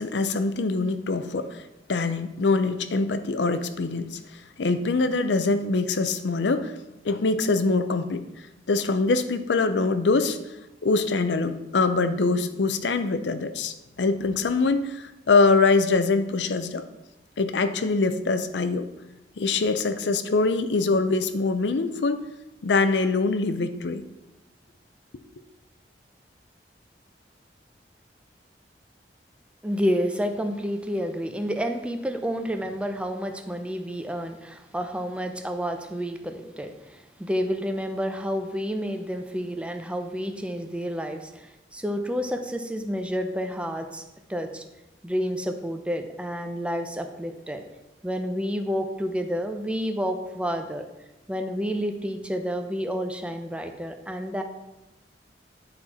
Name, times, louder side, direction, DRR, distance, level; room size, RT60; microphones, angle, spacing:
voice 1, 0.0-1.6 1.9-4.2 4.6-6.8 7.0-8.2 8.7-10.4 10.8-16.9 17.4-18.9 19.4-22.2 22.6-24.0, left 3 dB, 90° left, 10 dB, 0.6 m, -23 dB
voice 2, 29.6-44.0 44.3-44.6 45.0-47.6 48.0-50.9 51.3-54.4, equal, 5° right, 6 dB, 0.6 m, -29 dB
10.0 x 4.3 x 4.3 m, 0.98 s
head